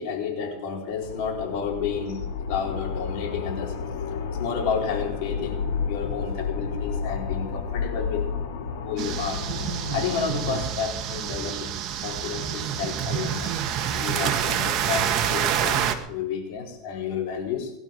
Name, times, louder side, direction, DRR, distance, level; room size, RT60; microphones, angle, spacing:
voice 1, 0.0-2.2 2.5-3.8 4.3-8.3 8.8-9.4 9.9-11.7 12.0-17.7, left 6 dB, 60° left, 0 dB, 4.4 m, -31 dB
sound 1, 1.0-10.7, left 6 dB, 85° left, 3.3 m, -31 dB
sound 2, 9.0-15.9, right 9 dB, 45° right, 1.6 m, -27 dB
20.0 x 11.5 x 5.4 m, 0.89 s
supercardioid pair, 140°, 0 cm